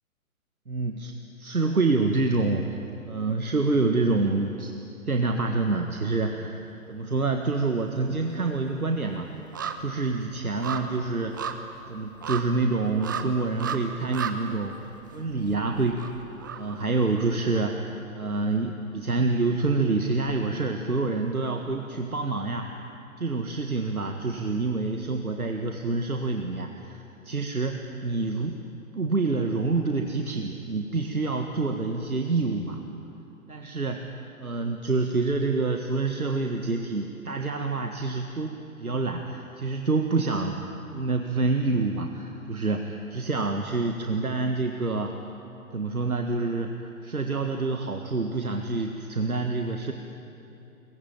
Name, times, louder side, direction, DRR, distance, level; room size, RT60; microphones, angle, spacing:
voice 1, 0.7-1.1 1.4-2.8 3.1-4.7 5.1-6.6 6.9-9.3 9.8-11.5 11.9-16.0 16.5-22.7 23.2-28.6 28.9-32.8 33.5-40.6 40.9-45.2 45.7-49.9, right 3 dB, 80° right, 4 dB, 1.8 m, -27 dB
sound 1, 6.6-7.4 7.6-17.6 18.0-18.1, right 6 dB, 15° right, 0.6 m, -37 dB
23.5 x 21.0 x 9.3 m, 2.8 s
figure-of-eight pair, 130°, 43 cm